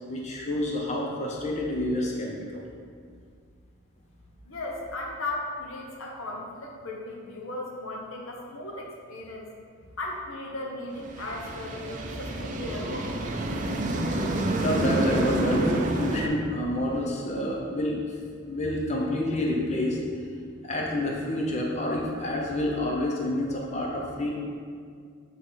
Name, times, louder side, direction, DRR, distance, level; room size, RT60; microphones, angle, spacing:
voice 1, 0.1-2.6 14.6-18.0 18.4-20.0 20.6-24.3, left 1 dB, 30° left, -2 dB, 0.7 m, -28 dB
voice 2, 4.4-9.5 10.0-13.1, left 2 dB, 75° left, 0 dB, 1.0 m, -36 dB
sound 1, 11.0-16.3, right 1 dB, 35° right, 0.5 m, -28 dB
7.5 x 3.7 x 4.0 m, 2.1 s
head